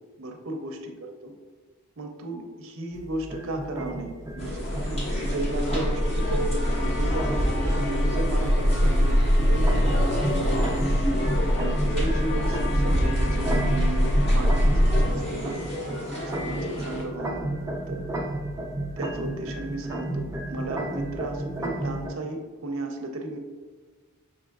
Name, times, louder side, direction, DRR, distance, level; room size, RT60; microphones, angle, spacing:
voice 1, 0.2-1.3 2.0-10.1 10.3-10.8 11.6-15.6 16.3-17.6 17.9-18.1 19.0-23.4, right 2 dB, 65° right, 3 dB, 0.6 m, -34 dB
sound 1, 2.9-22.1, right 1 dB, 15° right, 0.4 m, -33 dB
sound 2, 4.4-17.0, equal, 30° left, 0.9 m, -31 dB
sound 3, 4.5-15.1, equal, 50° left, 0.4 m, -24 dB
6.1 x 2.9 x 2.3 m, 1.4 s
head